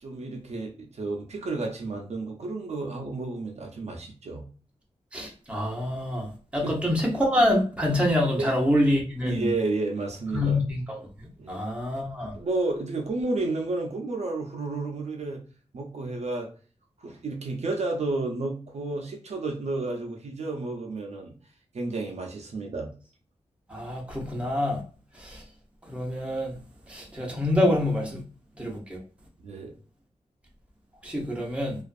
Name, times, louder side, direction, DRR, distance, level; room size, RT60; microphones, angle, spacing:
voice 1, 0.0-4.5 6.6-6.9 8.4-8.5 9.2-10.6 11.4-11.6 12.3-15.4 15.7-16.5 17.0-21.3 21.7-22.9 29.4-29.7, right 3 dB, 70° right, 0.5 m, -31 dB
voice 2, 5.1-9.5 10.3-11.1 11.5-12.3 23.7-24.8 25.2-25.4 25.9-26.5 26.9-28.2 28.6-29.0 31.0-31.8, left 1 dB, 10° right, 0.7 m, -26 dB
2.4 x 2.4 x 2.5 m
wide cardioid pair, 125°, 12 cm